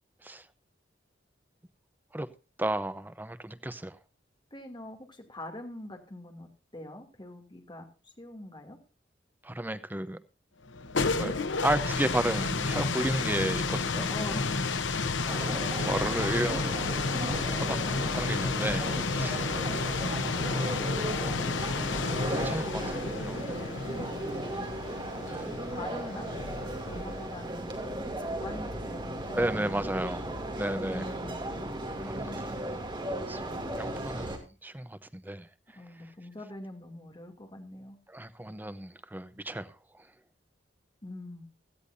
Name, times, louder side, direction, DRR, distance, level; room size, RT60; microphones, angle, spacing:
voice 1, 2.6-4.0 9.4-10.2 11.1-14.1 15.8-16.8 17.6-19.4 19.8-20.4 21.2-21.7 22.4-23.6 25.2-25.5 29.3-30.3 30.6-31.0 32.0-32.8 33.3-33.4 33.7-35.5 38.1-40.0, right 1 dB, 10° right, 0.8 m, -33 dB
voice 2, 4.5-8.8 14.1-15.1 24.0-24.8 25.7-30.3 30.8-31.7 35.7-38.0 41.0-41.5, left 1 dB, 25° left, 2.6 m, -44 dB
sound 1, 10.7-27.4, left 4 dB, 80° left, 1.0 m, -31 dB
sound 2, 15.0-22.3, equal, 65° right, 4.3 m, -45 dB
sound 3, 15.3-34.4, right 1 dB, 25° right, 2.7 m, -36 dB
17.0 x 13.5 x 2.7 m
head